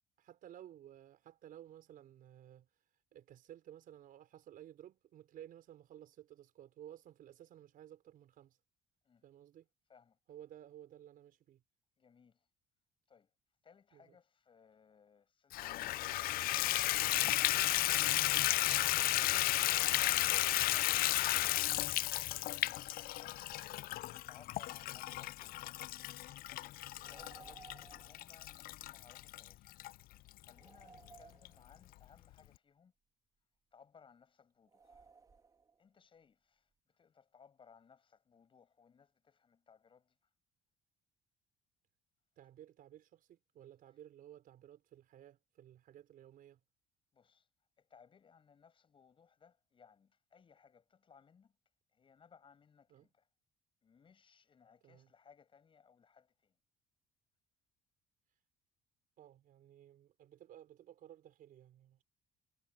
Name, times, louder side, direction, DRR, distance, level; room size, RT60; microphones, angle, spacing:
voice 1, 0.2-8.6 9.2-9.7 10.3-11.6 13.9-14.2 42.4-46.6 52.9-53.1 54.8-55.1 59.2-62.0, right 11 dB, 60° right, 5.3 m, -56 dB
voice 2, 12.0-12.5 13.1-13.3 13.6-16.2 22.3-23.4 24.3-26.0 27.1-32.9 33.7-35.1 35.8-40.3 47.1-47.5 47.8-51.6 51.9-53.3 53.8-56.6, left 6 dB, 30° left, 6.4 m, -64 dB
Water tap faucet / Bathtub (filling or washing), 15.5-29.9 30.5-30.6 31.1-31.2 31.4-31.5, left 16 dB, 60° left, 0.4 m, -33 dB
sound 1, 27.0-28.3 30.6-32.0 34.7-35.8, right 4 dB, 20° right, 3.4 m, -59 dB
cardioid pair, 150°, 17 cm